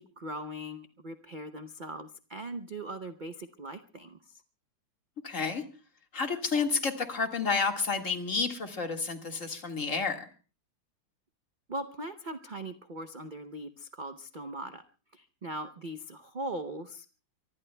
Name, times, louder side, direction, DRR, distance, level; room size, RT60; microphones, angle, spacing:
voice 1, 0.0-4.4 11.7-14.8 15.1-17.1, right 1 dB, 60° right, 8 dB, 0.5 m, -40 dB
voice 2, 5.2-5.6 6.1-10.3, left 4 dB, 40° left, 4 dB, 2.2 m, -30 dB
24.0 x 24.0 x 2.3 m, 0.36 s
omnidirectional pair, 2.1 m